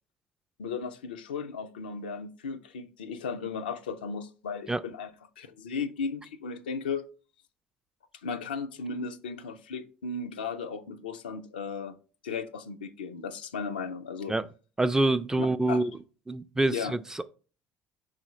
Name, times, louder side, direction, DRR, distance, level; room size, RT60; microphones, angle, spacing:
voice 1, 0.6-5.1 5.4-7.0 8.2-12.0 12.2-14.3 15.4-15.9 16.7-17.0, left 5 dB, 90° left, 0.4 m, -35 dB
voice 2, 14.8-15.9 16.3-17.2, right 2 dB, 10° right, 0.3 m, -26 dB
4.8 x 3.7 x 3.0 m
hypercardioid pair, 65°, 5 cm